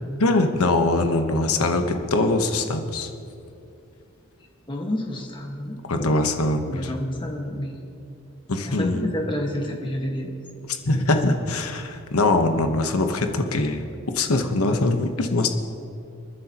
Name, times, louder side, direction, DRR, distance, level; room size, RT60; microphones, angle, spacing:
voice 1, 0.2-3.1 5.9-6.9 8.5-9.1 10.8-13.9 14.1-15.5, left 2 dB, 90° left, 5 dB, 1.1 m, -22 dB
voice 2, 4.7-5.8 6.7-7.8 8.7-10.3, left 1 dB, 20° left, 1 dB, 1.5 m, -29 dB
30.0 x 10.0 x 3.0 m, 2.5 s
head